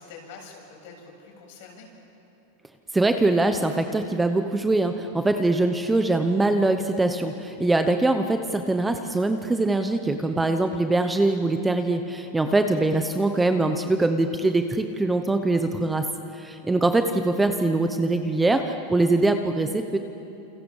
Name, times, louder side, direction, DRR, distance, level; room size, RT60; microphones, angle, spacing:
voice 1, 0.0-1.9 5.2-5.3 12.4-12.5 15.5-15.8, left 4 dB, 55° left, 0 dB, 7.9 m, -46 dB
voice 2, 2.9-16.0 16.3-20.0, right 2 dB, 5° right, 7 dB, 0.9 m, -23 dB
29.0 x 28.5 x 7.2 m, 2.9 s
supercardioid pair, 165°, 0 cm